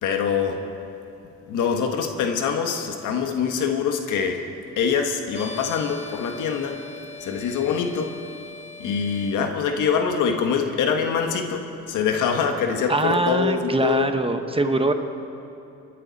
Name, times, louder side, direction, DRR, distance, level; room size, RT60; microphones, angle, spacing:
voice 1, 0.0-0.6 1.5-4.5 4.8-6.8 7.2-8.2 8.8-14.1, left 6 dB, 85° left, 4 dB, 1.5 m, -24 dB
sound 1, 5.3-9.4, left 4 dB, 20° left, 1.9 m, -40 dB
voice 2, 12.9-14.9, right 2 dB, 20° right, 7 dB, 1.1 m, -22 dB
26.5 x 11.0 x 4.1 m, 2.8 s
cardioid pair, 90°, 30 cm